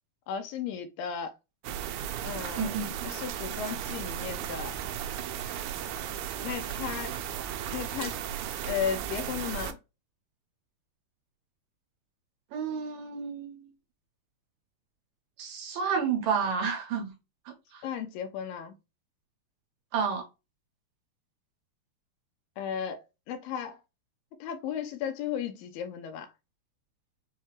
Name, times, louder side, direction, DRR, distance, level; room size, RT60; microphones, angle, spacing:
voice 1, 0.3-1.3 2.2-2.7 3.0-4.7 6.4-7.2 7.7-8.2 8.7-9.8 17.8-18.8 22.6-23.8 24.4-26.3, left 8 dB, 80° left, 2.3 m, -35 dB
sound 1, 1.6-9.7, right 10 dB, 90° right, 1.8 m, -35 dB
voice 2, 2.6-3.1 12.5-13.6 15.4-17.1 17.7-17.8 19.9-20.2, right 6 dB, 75° right, 2.4 m, -30 dB
6.4 x 2.2 x 3.1 m
omnidirectional pair, 4.3 m